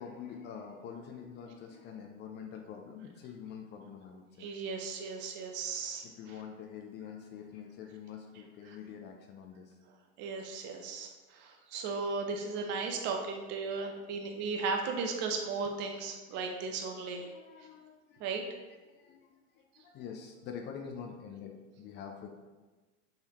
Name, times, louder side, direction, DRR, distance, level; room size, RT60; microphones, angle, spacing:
voice 1, 0.0-4.5 6.0-9.8 13.7-14.0 16.8-18.2 18.9-22.3, left 7 dB, 30° left, 3 dB, 0.4 m, -46 dB
voice 2, 4.4-6.1 10.2-17.3 17.6-17.7 18.2-18.4, right 4 dB, 30° right, 3 dB, 0.5 m, -36 dB
4.7 x 3.3 x 2.9 m, 1.2 s
hypercardioid pair, 110°, 39 cm